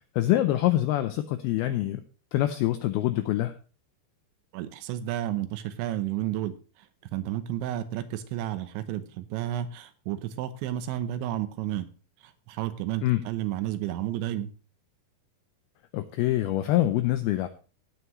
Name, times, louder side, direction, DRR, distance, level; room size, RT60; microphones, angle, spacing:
voice 1, 0.2-2.0 2.3-3.5 13.0-13.2 15.9-17.5, left 14 dB, 90° left, 2.2 m, -25 dB
voice 2, 4.5-6.5 7.1-11.9 12.2-14.5, right 12 dB, 85° right, 3.2 m, -31 dB
17.0 x 8.1 x 3.1 m
omnidirectional pair, 5.2 m